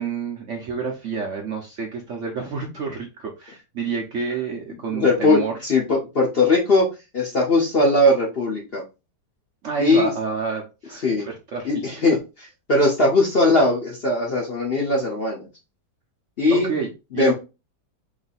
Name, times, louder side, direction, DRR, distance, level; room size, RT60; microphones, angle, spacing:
voice 1, 0.0-5.6 9.6-11.7 16.5-17.3, right 5 dB, 60° right, 1 dB, 0.8 m, -29 dB
voice 2, 4.9-6.9 7.1-8.8 9.8-10.1 11.0-11.2 11.6-15.5 16.4-16.7 17.1-17.3, left 2 dB, 45° left, -2 dB, 0.8 m, -19 dB
3.1 x 2.7 x 4.0 m, 0.28 s
omnidirectional pair, 1.9 m